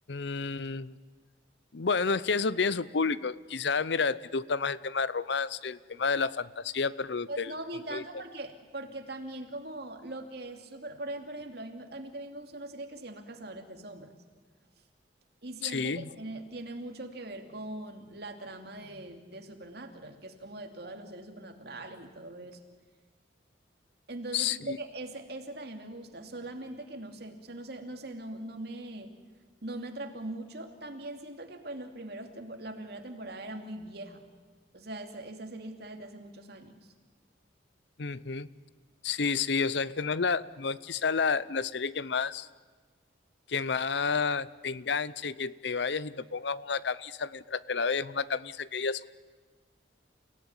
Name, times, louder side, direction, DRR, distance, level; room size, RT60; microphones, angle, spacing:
voice 1, 0.1-1.0 1.7-7.5 7.9-8.0 15.6-16.1 24.3-24.8 38.0-38.5 39.0-42.5 43.5-49.1, left 5 dB, 65° left, 18 dB, 0.7 m, -30 dB
voice 2, 7.3-14.1 15.4-22.6 24.1-29.1 29.6-34.2 34.7-36.9, right 1 dB, 60° right, 5 dB, 2.7 m, -41 dB
29.5 x 17.5 x 9.6 m, 1.4 s
head